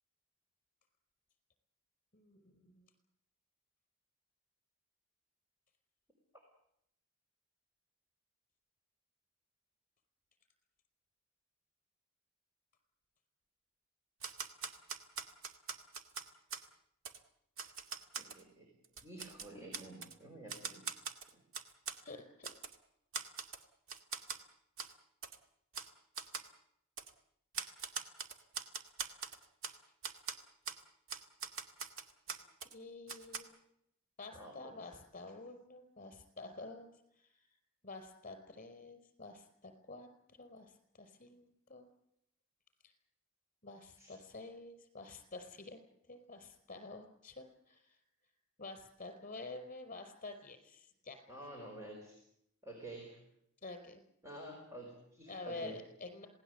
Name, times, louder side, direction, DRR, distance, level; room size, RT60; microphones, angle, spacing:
voice 1, 2.1-2.9 22.0-22.5 32.7-33.6 34.2-37.5 37.8-41.9 43.6-45.8 46.1-48.0 48.6-51.2 53.6-54.0 55.3-56.3, left 3 dB, 40° left, 8 dB, 4.9 m, -49 dB
Typewriter, 14.2-16.7 17.1-17.2 17.6-18.4 18.8-20.1 20.5-22.0 22.4-22.8 23.1-23.6 23.9-24.4 24.8-24.9 25.2-25.4 25.7-25.9 26.2-26.5 27.0-27.1 27.5-29.8 30.0-30.4 30.7-30.8 31.1-32.7 33.1-33.4, right 5 dB, 80° right, 2.2 m, -42 dB
voice 2, 18.2-18.7 19.0-20.9 21.3-21.4 34.3-34.8 44.0-44.1 51.3-52.2 52.6-53.2 54.2-55.8, right 1 dB, 15° right, 0 dB, 5.1 m, -50 dB
27.5 x 18.0 x 8.0 m, 0.75 s
head